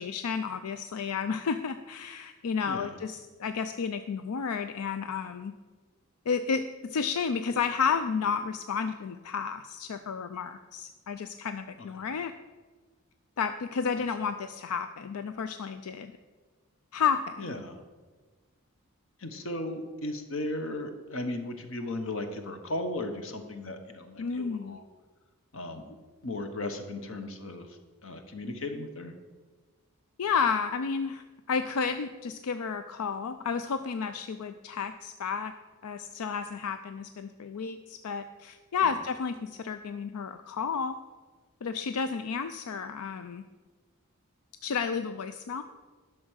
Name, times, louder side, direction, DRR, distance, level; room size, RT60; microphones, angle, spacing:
voice 1, 0.0-5.5 6.3-12.3 13.4-16.1 16.9-17.5 24.2-24.8 30.2-35.5 35.8-40.9 41.6-43.4 44.6-45.6, left 6 dB, 85° left, 10 dB, 0.4 m, -31 dB
voice 2, 2.7-3.0 11.9-12.0 17.4-17.8 19.2-24.8 25.5-26.0 26.2-29.1 38.8-38.9, left 1 dB, 65° left, 7 dB, 1.1 m, -36 dB
11.0 x 6.1 x 6.3 m, 1.4 s
head